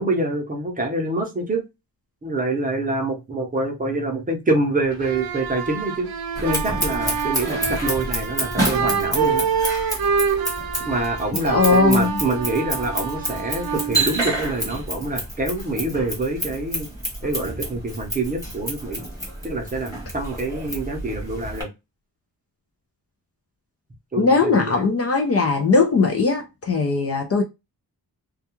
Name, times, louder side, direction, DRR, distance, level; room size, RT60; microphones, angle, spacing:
voice 1, 0.0-1.6 2.2-6.1 6.4-9.4 10.8-16.9 17.2-19.0 19.4-21.7 24.1-24.8, right 2 dB, 20° right, 0.6 m, -26 dB
sound 1, 4.9-14.7, right 6 dB, 70° right, 0.6 m, -26 dB
Scissors, 6.4-21.6, right 1 dB, 10° left, 1.1 m, -29 dB
voice 2, 11.4-12.2 24.2-27.4, left 4 dB, 40° left, 0.4 m, -19 dB
2.3 x 2.2 x 2.9 m
wide cardioid pair, 175°, 37 cm